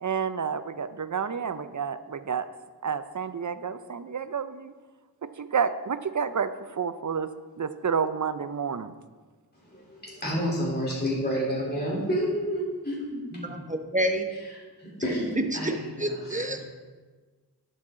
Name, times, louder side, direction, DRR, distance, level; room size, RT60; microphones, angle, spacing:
voice 1, 0.0-2.5 2.8-4.7 5.2-7.3 7.6-8.9, right 6 dB, 50° right, 12 dB, 0.6 m, -30 dB
voice 2, 9.7-13.6 14.8-16.5, equal, 25° left, -7 dB, 3.6 m, -30 dB
voice 3, 13.7-14.3 15.6-16.6, equal, 20° right, 6 dB, 1.1 m, -28 dB
11.0 x 8.2 x 3.8 m, 1.4 s
wide cardioid pair, 40°, 39 cm